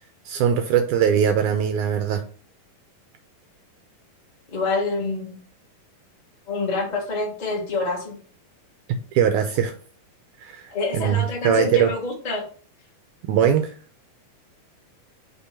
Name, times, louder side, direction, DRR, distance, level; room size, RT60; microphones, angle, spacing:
voice 1, 0.2-2.2 9.1-9.7 10.4-11.9 13.2-13.7, right 8 dB, 85° right, 7 dB, 1.7 m, -21 dB
voice 2, 4.5-5.4 6.5-8.2 10.7-12.4, left 3 dB, 25° left, -2 dB, 1.0 m, -26 dB
5.9 x 3.4 x 5.7 m, 0.42 s
omnidirectional pair, 4.0 m